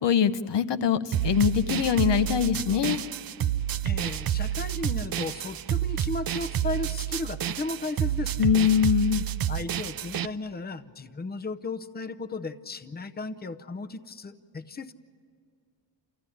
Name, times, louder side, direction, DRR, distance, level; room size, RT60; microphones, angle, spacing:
voice 1, 0.0-3.0 8.4-9.2, left 8 dB, 65° left, 12 dB, 0.9 m, -23 dB
sound 1, 1.1-10.3, right 11 dB, 50° right, 0.5 m, -29 dB
voice 2, 3.8-8.5 9.5-14.9, left 3 dB, 20° left, 10 dB, 0.6 m, -35 dB
29.0 x 14.5 x 10.0 m, 2.2 s
wide cardioid pair, 130°, 45 cm